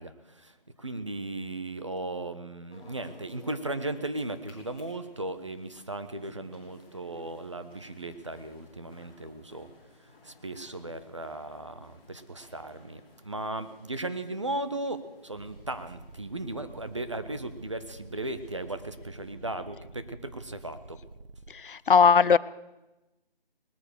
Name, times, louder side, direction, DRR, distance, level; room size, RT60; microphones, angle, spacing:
voice 1, 0.0-9.7 10.0-21.0, right 2 dB, 30° right, 10 dB, 0.6 m, -36 dB
sound 1, 2.7-19.3, left 2 dB, 10° left, 3.0 m, -57 dB
sound 2, 15.3-21.5, right 2 dB, 80° right, 1.4 m, -49 dB
voice 2, 21.5-22.4, left 6 dB, 60° left, 19 dB, 0.5 m, -19 dB
19.5 x 8.9 x 6.7 m, 1.0 s
figure-of-eight pair, 170°, 29 cm